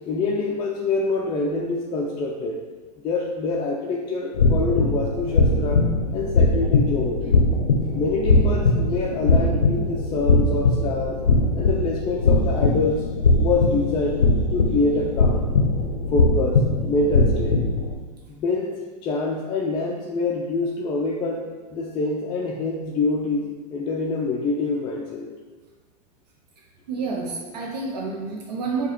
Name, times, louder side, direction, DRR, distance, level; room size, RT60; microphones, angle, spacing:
voice 1, 0.1-2.6 3.0-5.8 6.1-7.4 7.9-11.2 11.6-13.0 13.4-14.2 14.5-15.5 16.1-17.6 18.3-25.3, left 3 dB, 25° left, -2 dB, 0.3 m, -26 dB
sound 1, 4.3-17.9, left 3 dB, 85° left, 0.5 m, -20 dB
voice 2, 26.9-28.9, right 4 dB, 75° right, -2 dB, 0.6 m, -29 dB
4.5 x 2.3 x 3.0 m, 1.4 s
hypercardioid pair, 95°, 21 cm